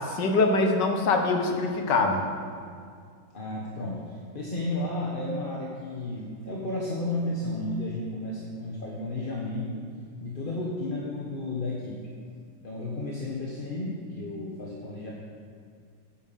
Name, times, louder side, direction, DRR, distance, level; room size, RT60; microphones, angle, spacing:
voice 1, 0.0-2.2, left 3 dB, 65° left, 4 dB, 1.8 m, -24 dB
voice 2, 3.3-9.8 10.2-12.0 12.6-15.1, left 2 dB, 30° left, -4 dB, 1.1 m, -33 dB
9.5 x 9.0 x 7.5 m, 2.2 s
omnidirectional pair, 2.1 m